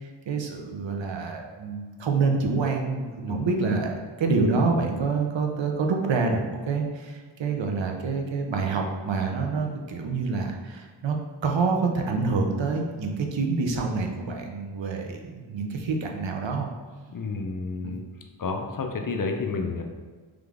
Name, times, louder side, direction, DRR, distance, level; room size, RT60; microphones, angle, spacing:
voice 1, 0.3-11.2 11.4-16.7 17.8-17.9, right 4 dB, 70° right, 2 dB, 0.7 m, -27 dB
voice 2, 17.1-18.0 18.4-19.8, left 4 dB, 45° left, 3 dB, 0.6 m, -30 dB
3.6 x 3.4 x 3.5 m, 1.4 s
wide cardioid pair, 70°, 46 cm